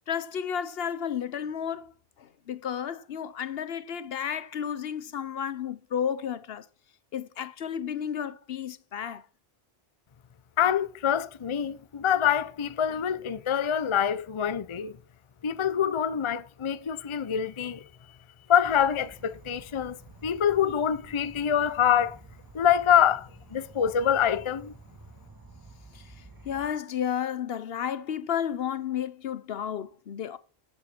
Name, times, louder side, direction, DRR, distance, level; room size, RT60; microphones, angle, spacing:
voice 1, 0.1-1.9 2.2-6.7 7.1-9.2 25.9-30.4, left 8 dB, 70° left, 1.0 m, -32 dB
voice 2, 10.6-15.0 15.4-17.9 18.5-22.2 22.5-24.7, left 9 dB, 35° left, 0.6 m, -25 dB
Insect / Frog, 18.6-26.7, right 3 dB, 20° right, 2.7 m, -51 dB
14.0 x 8.2 x 4.4 m
omnidirectional pair, 1.1 m